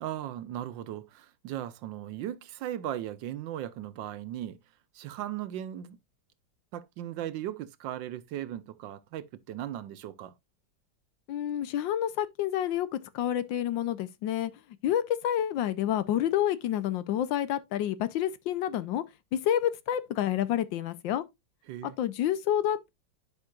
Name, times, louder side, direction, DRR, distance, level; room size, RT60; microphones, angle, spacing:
voice 1, 0.0-4.6 4.9-6.0 6.7-10.3 21.7-22.0, right 12 dB, 75° right, 1.3 m, -37 dB
voice 2, 11.3-14.5 14.8-19.0 19.3-21.2 21.8-22.9, left 11 dB, 75° left, 1.4 m, -29 dB
10.5 x 5.3 x 2.3 m
omnidirectional pair, 2.1 m